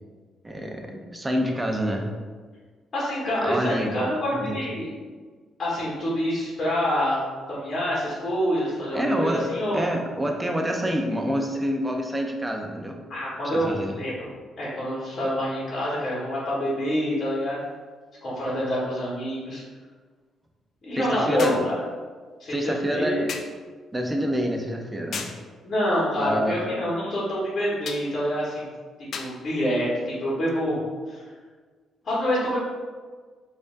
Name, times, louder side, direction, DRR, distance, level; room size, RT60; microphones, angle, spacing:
voice 1, 0.4-2.1 3.4-4.0 4.3-4.6 8.9-9.5 9.7-13.0 13.4-14.0 21.0-21.7 22.5-23.3 23.9-25.3 26.2-26.6, equal, 15° right, 2 dB, 0.5 m, -27 dB
voice 2, 2.9-4.9 5.6-7.2 7.5-9.9 13.1-14.3 14.6-17.6 18.2-19.6 20.8-21.7 22.4-23.2 25.6-28.7 29.0-30.8 31.1-31.2 32.0-32.6, equal, 45° left, -7 dB, 1.3 m, -26 dB
sound 1, 17.6-17.7 21.4-21.7 23.3-23.6 25.1-25.5 27.8-28.1 29.1-29.4 30.5-30.6, left 5 dB, 60° left, 0.3 m, -34 dB
4.8 x 2.6 x 2.5 m, 1.5 s
cardioid pair, 90°, 0 cm